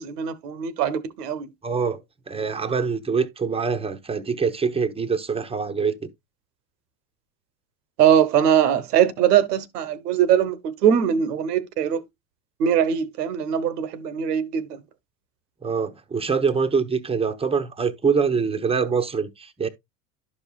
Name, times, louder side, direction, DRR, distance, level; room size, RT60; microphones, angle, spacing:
voice 1, 0.0-1.5 8.0-12.0 12.6-14.6, right 9 dB, 80° right, 1.0 m, -21 dB
voice 2, 1.6-2.0 2.3-6.1 15.6-19.7, right 5 dB, 10° right, 0.8 m, -24 dB
11.5 x 5.4 x 2.3 m
hypercardioid pair, 80°, 47 cm